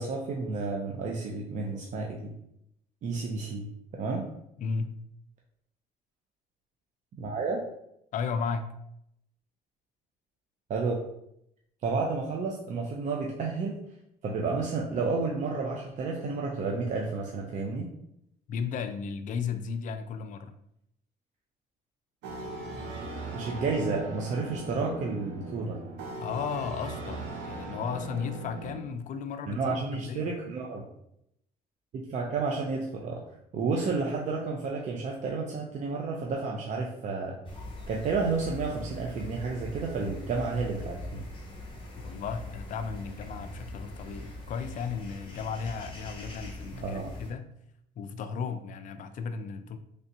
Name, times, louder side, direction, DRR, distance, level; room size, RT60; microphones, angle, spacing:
voice 1, 0.0-2.3 3.0-3.7 3.9-4.3 7.2-7.6 10.7-11.0 11.8-13.8 14.2-17.9 23.3-25.8 29.5-30.8 31.9-33.2 33.5-37.4 37.9-41.2 46.8-47.1, right 4 dB, 45° right, -1 dB, 0.5 m, -31 dB
voice 2, 4.6-4.9 8.1-8.7 18.5-20.6 26.2-30.3 33.8-33.9 42.0-47.5 48.0-49.8, left 6 dB, 50° left, 9 dB, 0.4 m, -35 dB
sound 1, 22.2-28.8, right 2 dB, 90° right, 0.7 m, -39 dB
sound 2, 37.4-47.3, left 1 dB, 30° left, 0.9 m, -42 dB
3.3 x 2.7 x 2.6 m, 0.77 s
cardioid pair, 110°, 17 cm